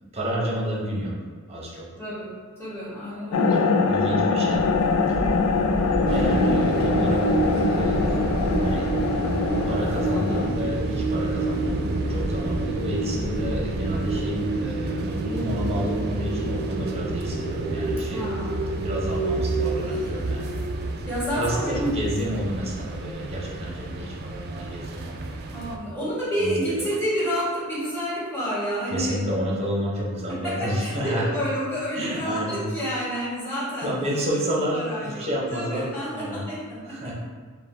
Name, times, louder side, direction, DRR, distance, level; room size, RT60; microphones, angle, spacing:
voice 1, 0.1-1.2 1.5-1.9 3.2-4.6 5.1-5.2 6.0-8.2 8.6-9.0 9.6-18.2 18.8-20.5 21.3-25.2 26.4-26.9 28.9-31.3 32.0-32.6 33.8-36.4 36.9-37.1, equal, 30° right, -4 dB, 0.8 m, -30 dB
voice 2, 2.0-4.1 5.2-5.6 18.0-18.6 19.8-20.2 21.1-22.0 25.5-29.2 30.3-34.0 34.7-37.1, equal, 10° left, -9 dB, 1.4 m, -30 dB
sound 1, 3.3-10.5, left 4 dB, 90° left, 0.4 m, -23 dB
sound 2, 4.5-14.3, equal, 30° left, 0.9 m, -33 dB
sound 3, 6.1-25.8, right 2 dB, 45° right, 0.4 m, -28 dB
5.0 x 2.2 x 3.3 m, 1.5 s
head